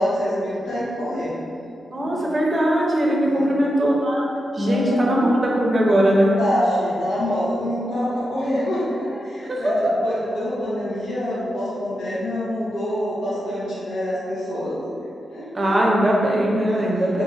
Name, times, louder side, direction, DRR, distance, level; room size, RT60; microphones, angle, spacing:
voice 1, 0.0-1.3 2.0-2.2 3.2-3.5 4.6-5.0 6.4-14.9 15.3-15.8 16.7-16.9 17.1-17.2, equal, 90° left, -9 dB, 0.9 m, -26 dB
voice 2, 1.9-6.4 9.5-10.0 15.5-17.2, equal, 30° right, -3 dB, 0.6 m, -20 dB
2.7 x 2.4 x 3.8 m, 2.6 s
cardioid pair, 100°, 0 cm